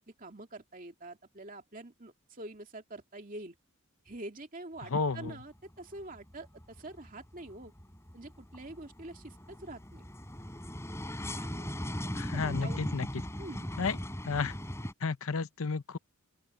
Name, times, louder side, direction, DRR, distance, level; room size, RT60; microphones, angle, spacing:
voice 1, 0.0-3.5 4.0-7.7 8.1-10.0 11.3-13.0 13.4-13.7, right 2 dB, 35° right, 2.5 m, -46 dB
sound 1, 4.8-5.4 5.7-14.9, equal, 10° left, 5.9 m, -39 dB
voice 2, 4.9-5.3 12.1-13.1 13.8-14.0 14.2-14.5 15.0-16.0, left 4 dB, 70° left, 0.8 m, -32 dB
open air
head